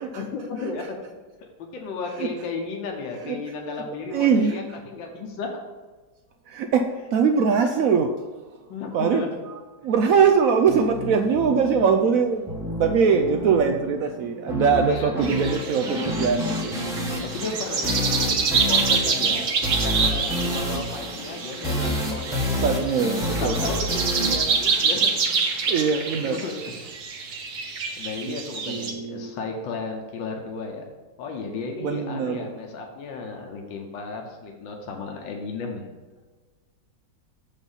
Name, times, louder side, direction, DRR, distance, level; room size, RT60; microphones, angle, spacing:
voice 1, 0.0-1.1 1.4-5.6 8.7-9.3 14.9-15.1 17.2-19.6 19.8-22.8 23.2-23.9 24.2-25.1 26.3-26.7 28.0-30.9 31.2-35.9, left 4 dB, 75° left, 1 dB, 1.6 m, -34 dB
voice 2, 4.1-4.6 6.5-8.2 8.9-17.3 19.3-19.5 22.6-23.6 25.7-26.4 28.2-28.4 28.7-29.3 31.8-32.5, right 6 dB, 85° right, 5 dB, 0.7 m, -22 dB
sound 1, 10.7-25.7, left 1 dB, ahead, 1.0 m, -30 dB
sound 2, 15.2-28.9, right 5 dB, 65° right, 1.5 m, -27 dB
7.2 x 5.3 x 5.5 m, 1.3 s
omnidirectional pair, 2.0 m